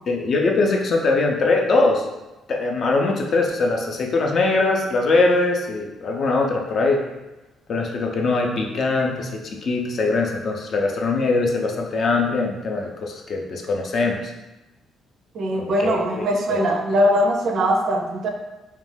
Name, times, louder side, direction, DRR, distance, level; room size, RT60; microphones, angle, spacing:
voice 1, 0.1-2.1 2.5-7.0 7.7-14.3 15.6-16.7, left 3 dB, 50° left, 1 dB, 0.4 m, -22 dB
voice 2, 15.3-18.3, equal, 60° right, 3 dB, 0.4 m, -21 dB
2.4 x 2.2 x 3.2 m, 1.0 s
cardioid pair, 105°, 0 cm